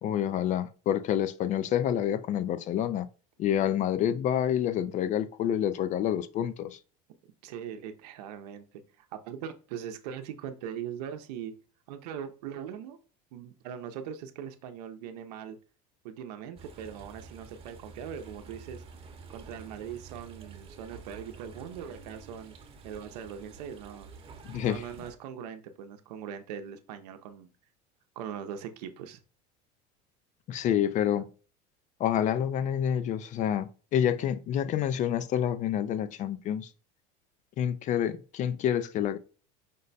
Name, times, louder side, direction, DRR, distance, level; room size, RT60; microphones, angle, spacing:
voice 1, 0.0-3.1 3.4-6.8 24.5-24.8 30.5-31.3 32.0-36.7 37.6-39.2, left 10 dB, 40° left, 0.4 m, -28 dB
voice 2, 7.4-8.6 9.1-11.5 11.9-13.0 13.3-15.6 16.0-18.8 19.3-22.6 22.8-24.1 24.6-27.5 28.2-29.2, right 8 dB, 85° right, 0.7 m, -40 dB
sound 1, 16.6-25.1, right 4 dB, 30° right, 0.9 m, -49 dB
5.2 x 2.1 x 4.0 m
supercardioid pair, 115°, 20 cm